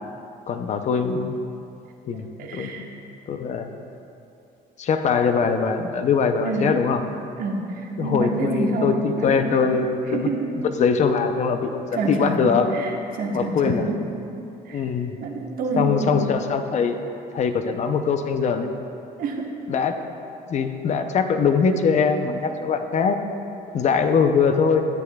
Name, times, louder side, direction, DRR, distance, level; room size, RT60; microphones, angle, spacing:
voice 1, 0.5-1.4 2.1-2.3 2.5-2.8 3.3-3.7 4.8-7.0 8.0-10.3 10.8-12.7 13.3-13.9 14.7-15.1 15.7-17.0 17.3-18.8 19.7-20.0 20.5-23.2 23.7-24.8, left 5 dB, 45° left, 7 dB, 0.6 m, -22 dB
voice 2, 2.4-2.9 6.4-6.8 7.4-9.7 10.1-10.5 11.9-14.0 14.6-14.8 15.2-16.3 19.2-19.6, right 2 dB, 60° right, 0 dB, 1.2 m, -27 dB
13.0 x 8.6 x 2.3 m, 2.7 s
cardioid pair, 110°, 17 cm